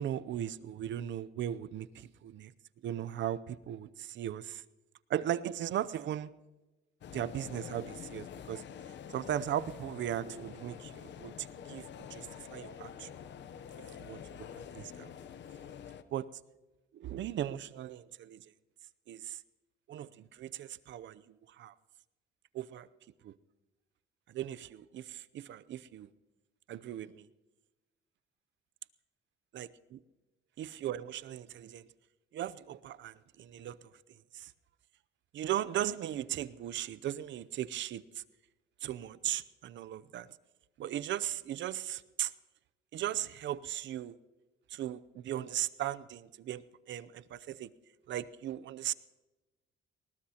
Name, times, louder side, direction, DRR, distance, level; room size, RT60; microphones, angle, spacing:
voice 1, 0.0-2.5 2.8-4.6 5.1-6.3 7.1-8.6 9.1-13.1 14.0-14.5 14.7-15.1 16.1-16.3 16.9-18.4 19.1-19.4 19.9-21.7 22.5-22.9 23.2-23.3 24.3-26.1 26.7-27.3 29.5-30.0 30.6-31.8 32.3-33.8 34.3-34.5 35.3-38.2 38.8-40.3 40.8-42.3 42.9-44.2 44.7-47.7 48.1-48.9, right 11 dB, 70° right, 17 dB, 0.6 m, -37 dB
sound 1, 7.0-16.0, left 8 dB, 65° left, 0.8 m, -47 dB
20.5 x 19.5 x 2.9 m, 1.1 s
cardioid pair, 90°, 20 cm